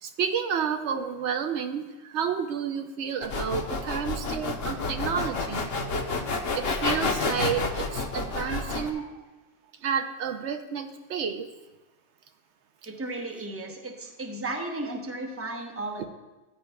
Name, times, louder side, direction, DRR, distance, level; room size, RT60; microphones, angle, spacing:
voice 1, 0.0-5.7 6.6-9.1 9.8-11.5, right 7 dB, 75° right, 6 dB, 0.9 m, -30 dB
sound 1, 3.2-8.9, left 3 dB, 60° left, 1.0 m, -29 dB
voice 2, 8.3-9.1 12.9-16.1, right 2 dB, 15° right, 2 dB, 0.8 m, -35 dB
14.0 x 8.3 x 2.2 m, 1.1 s
omnidirectional pair, 1.2 m